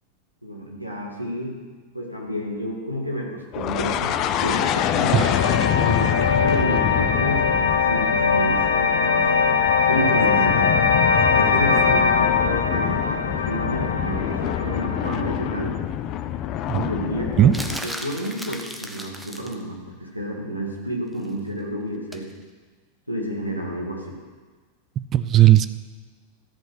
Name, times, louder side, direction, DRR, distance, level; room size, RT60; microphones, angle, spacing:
voice 1, 0.4-1.6 1.9-5.3 5.7-9.5 9.9-10.7 11.3-15.8 16.7-22.3 23.1-24.2, equal, 90° right, -1 dB, 2.0 m, -30 dB
sound 1, 3.5-17.8, left 10 dB, 35° left, 0.5 m, -26 dB
sound 2, 4.5-15.6, left 5 dB, 75° left, 0.8 m, -22 dB
sound 3, 17.5-19.6 22.1-22.3, equal, 5° right, 0.9 m, -35 dB
voice 2, 25.0-25.7, right 12 dB, 30° right, 13 dB, 0.4 m, -16 dB
14.0 x 5.5 x 6.3 m, 1.4 s
figure-of-eight pair, 90°, 0 cm